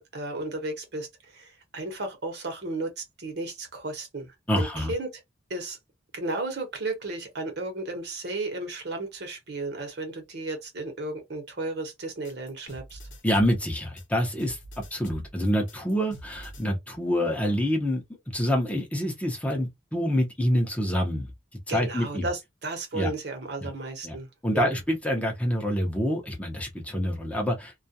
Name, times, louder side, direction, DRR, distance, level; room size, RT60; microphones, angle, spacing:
voice 1, 0.0-4.3 4.6-5.1 5.5-5.8 6.1-13.0 21.7-24.3 24.5-24.8, right 2 dB, 60° right, 0.9 m, -34 dB
voice 2, 4.5-4.9 13.2-14.6 14.9-18.0 18.3-21.3 21.7-22.3 22.9-23.1 23.6-23.7 24.0-24.2 24.4-27.7, equal, 5° left, 0.6 m, -26 dB
sound 1, 12.2-16.7, equal, 90° left, 0.8 m, -45 dB
2.3 x 2.1 x 2.6 m
head